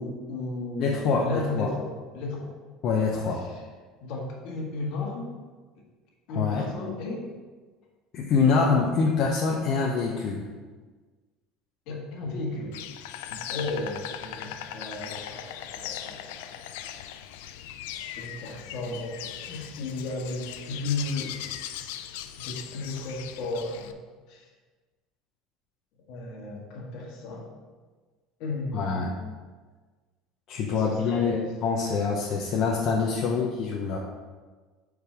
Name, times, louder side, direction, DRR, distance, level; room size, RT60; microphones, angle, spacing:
voice 1, 0.0-2.5 4.0-5.3 6.3-7.2 11.9-12.8 13.3-16.7 17.9-21.7 22.4-24.0 24.3-24.5 26.1-27.5 28.4-29.2 30.8-31.5 33.3-33.4, left 2 dB, 70° left, -1 dB, 1.7 m, -34 dB
voice 2, 0.8-1.7 2.8-3.4 6.3-6.7 8.1-10.5 28.7-29.1 30.5-34.0, left 5 dB, 50° left, -3 dB, 0.8 m, -25 dB
Insect, 12.7-23.9, left 11 dB, 90° left, 0.4 m, -39 dB
5.2 x 4.8 x 5.0 m, 1.4 s
supercardioid pair, 120°, 0 cm